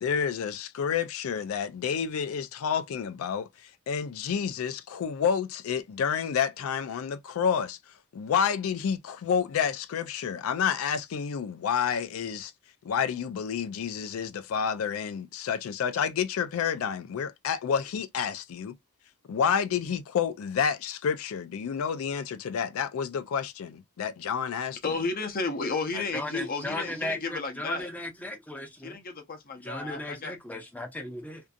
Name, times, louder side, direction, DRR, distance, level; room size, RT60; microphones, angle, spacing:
voice 1, 0.0-7.8 8.1-12.5 12.8-18.7 19.3-24.8, left 7 dB, 85° left, 0.4 m, -29 dB
voice 2, 24.8-27.9 28.8-30.3, left 4 dB, 45° left, 0.7 m, -32 dB
voice 3, 25.9-29.0 29.6-31.4, left 1 dB, 10° left, 0.6 m, -36 dB
2.6 x 2.5 x 2.3 m
head